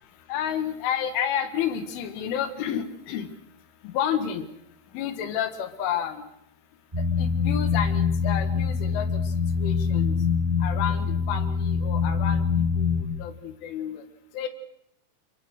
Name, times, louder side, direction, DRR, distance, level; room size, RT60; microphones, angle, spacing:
voice 1, 0.3-3.3 3.8-4.4 4.9-6.2 7.2-9.1 9.6-10.2 10.6-12.4 12.8-14.0 14.3-14.5, left 9 dB, 80° left, 9 dB, 4.2 m, -30 dB
sound 1, 6.9-13.0, left 6 dB, 5° right, 5.4 m, -24 dB
28.5 x 24.0 x 6.6 m, 0.78 s
omnidirectional pair, 5.6 m